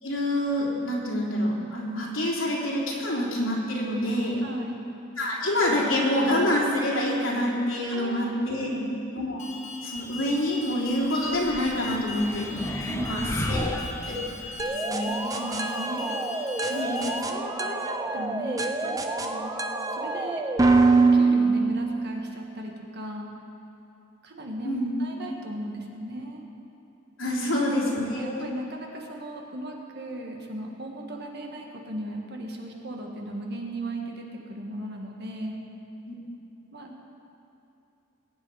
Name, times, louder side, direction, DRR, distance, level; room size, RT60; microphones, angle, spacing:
voice 1, 0.0-4.4 5.2-8.9 9.1-9.5 9.8-12.5 13.1-14.1 14.6-15.1 16.7-17.0 24.6-24.9 27.2-28.5 36.1-36.2, left 1 dB, 70° left, -5 dB, 3.4 m, -27 dB
voice 2, 4.4-4.8 7.9-8.8 12.9-13.9 15.3-16.2 16.7-19.5 19.9-20.4 20.8-23.3 24.2-26.4 27.3-27.6 28.1-35.6 36.7-37.0, right 1 dB, 55° right, 1 dB, 1.7 m, -37 dB
Alarm, 9.4-17.2, left 3 dB, 35° left, 1.2 m, -40 dB
sound 1, 11.3-14.6, left 1 dB, 15° left, 0.8 m, -33 dB
sound 2, 14.6-22.4, right 3 dB, 15° right, 0.7 m, -25 dB
21.0 x 9.0 x 4.9 m, 2.9 s
head